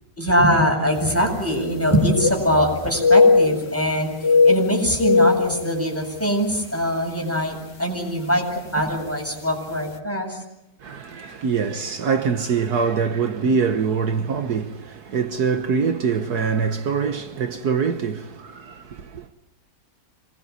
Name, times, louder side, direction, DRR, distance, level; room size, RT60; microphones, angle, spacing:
voice 1, 0.2-10.4, equal, 10° left, 7.8 m, -22 dB
sound 1, 1.0-1.1 1.4-2.7 3.0-3.9 4.1-6.3 6.7-6.9 7.5-7.8 8.9-9.0 9.3-9.4, left 4 dB, 90° left, 2.7 m, -19 dB
voice 2, 10.8-19.3, right 5 dB, 70° right, 1.7 m, -24 dB
27.0 x 21.5 x 9.7 m
omnidirectional pair, 1.8 m